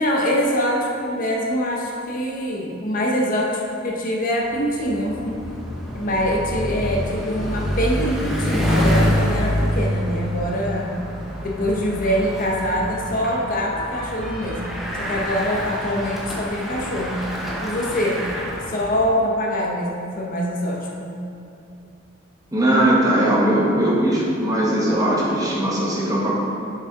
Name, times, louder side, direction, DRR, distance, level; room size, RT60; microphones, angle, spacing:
voice 1, 0.0-5.4 5.9-11.0 11.4-17.2 17.6-18.2 18.7-21.2, equal, 40° left, -2 dB, 0.7 m, -24 dB
Bicycle, 4.5-19.1, equal, ahead, 0.7 m, -26 dB
voice 2, 22.5-26.3, right 1 dB, 15° right, -5 dB, 1.1 m, -19 dB
7.0 x 5.6 x 3.6 m, 2.8 s
head